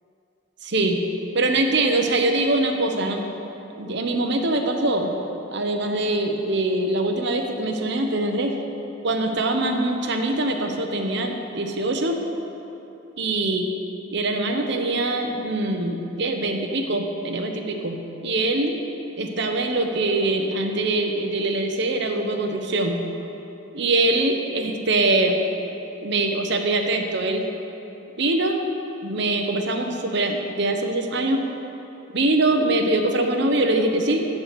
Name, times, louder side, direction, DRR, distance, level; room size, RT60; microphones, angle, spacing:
voice 1, 0.6-1.0 1.3-3.2 3.8-5.1 5.5-8.6 9.0-12.2 13.2-13.7 14.1-18.0 18.2-18.8 19.2-23.0 23.7-25.4 26.0-27.5 28.2-28.6 29.0-31.4 32.1-34.2, right 2 dB, 65° right, 4 dB, 1.0 m, -23 dB
13.5 x 4.8 x 8.1 m, 3.0 s
head